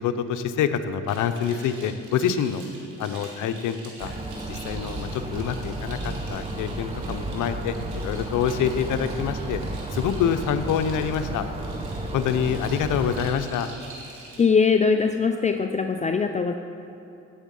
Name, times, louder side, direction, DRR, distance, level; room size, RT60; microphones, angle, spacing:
voice 1, 0.0-2.6 3.0-4.1 4.5-9.6 9.9-11.4 12.1-13.7, left 8 dB, 80° left, 9 dB, 0.8 m, -26 dB
sound 1, 1.0-14.4, right 2 dB, 75° right, 3.1 m, -46 dB
sound 2, 4.0-13.3, right 2 dB, 20° right, 1.2 m, -33 dB
voice 2, 14.4-16.5, left 5 dB, 25° left, 6 dB, 0.5 m, -21 dB
18.0 x 7.3 x 5.5 m, 2.9 s
cardioid pair, 90°, 30 cm